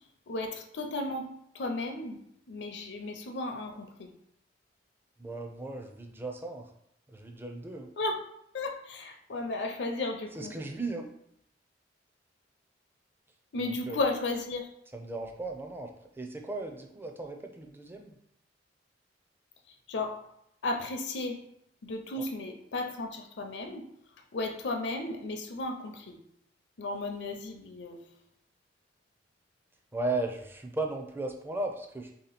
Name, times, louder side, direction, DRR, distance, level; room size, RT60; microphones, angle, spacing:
voice 1, 0.3-1.3 1.5-2.2 2.5-4.1 8.0-8.2 8.5-10.5 13.5-14.7 19.9-20.1 20.6-21.4 21.8-23.8 24.3-26.2 26.8-28.0, left 2 dB, 70° left, 4 dB, 0.6 m, -34 dB
voice 2, 5.2-6.7 7.1-7.9 10.4-11.1 13.6-14.0 14.9-18.2 22.2-22.3 29.9-32.1, right 2 dB, 10° right, 3 dB, 0.4 m, -36 dB
3.4 x 2.9 x 4.1 m, 0.74 s
head